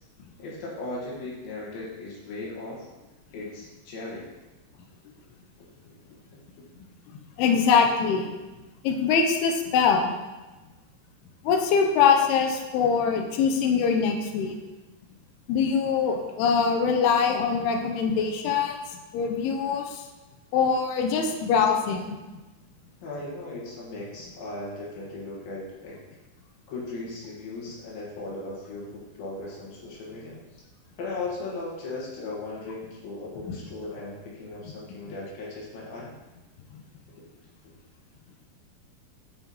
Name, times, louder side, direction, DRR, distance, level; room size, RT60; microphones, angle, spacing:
voice 1, 0.4-2.9 3.3-4.3 5.2-5.3 5.6-6.0 6.3-6.4 23.0-26.0 26.7-30.6 31.0-36.1 37.2-37.3 37.6-37.7, left 2 dB, 70° left, -4 dB, 3.3 m, -37 dB
voice 2, 7.4-8.3 8.8-10.1 11.4-14.6 15.5-20.1 20.5-22.2 33.5-33.6, left 6 dB, 85° left, 3 dB, 2.7 m, -23 dB
9.2 x 5.6 x 3.0 m, 1.1 s
omnidirectional pair, 4.5 m